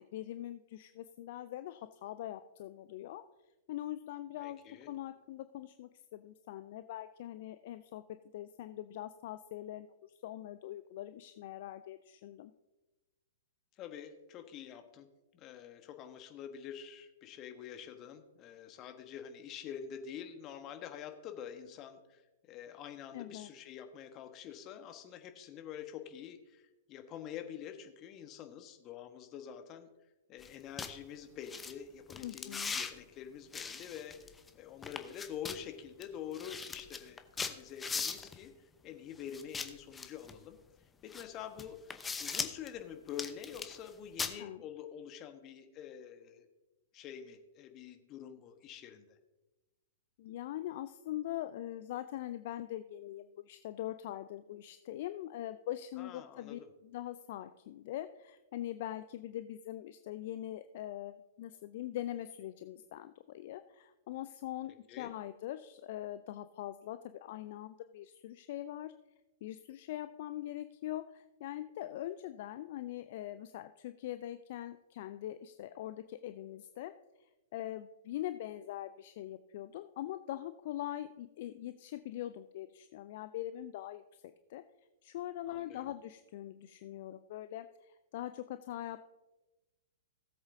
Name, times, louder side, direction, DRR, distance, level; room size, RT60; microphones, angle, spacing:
voice 1, 0.0-3.2 3.7-4.6 4.9-8.0 8.3-12.5 23.1-23.5 32.2-32.8 44.4-44.6 50.2-68.9 69.4-76.9 77.2-84.0 84.5-84.6 85.0-89.0, left 13 dB, 50° left, 11 dB, 0.4 m, -42 dB
voice 2, 4.4-4.9 13.8-15.1 15.3-22.2 22.5-29.9 30.3-38.5 38.8-40.6 41.0-46.5 46.9-49.2 56.0-56.7 64.9-65.1 85.5-85.8, left 9 dB, 30° left, 7 dB, 1.2 m, -47 dB
sound 1, 30.4-30.5 30.8-30.9 31.5-31.7 32.1-32.9 33.5-34.5 34.8-35.6 36.0-36.1 36.3-38.4 39.3-40.4 41.1-41.2 41.6-42.7 43.1-43.9 44.2-44.3, left 5 dB, 15° left, 0.7 m, -39 dB
18.0 x 7.9 x 2.7 m, 1.1 s
figure-of-eight pair, 105°, 0 cm